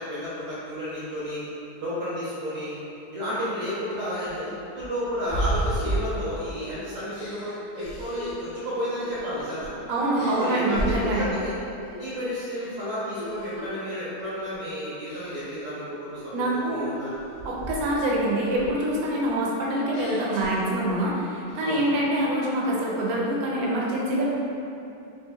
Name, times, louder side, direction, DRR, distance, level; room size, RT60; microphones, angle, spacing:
voice 1, 0.0-1.4 1.8-2.8 3.1-9.7 10.3-11.5 12.0-17.2 21.6-21.9, equal, 60° right, -10 dB, 1.2 m, -32 dB
sound 1, 3.9-6.6 7.1-9.8 10.1-11.4 11.8-12.1 12.5-13.8 14.2-14.5 15.1-15.6 16.2-18.1 18.4-21.1 21.5-22.1, right 1 dB, 80° left, 0.7 m, -35 dB
voice 2, 9.9-11.3 16.3-16.9 17.4-24.3, right 1 dB, 85° right, -4 dB, 1.4 m, -25 dB
4.4 x 3.5 x 2.2 m, 2.7 s
omnidirectional pair, 2.0 m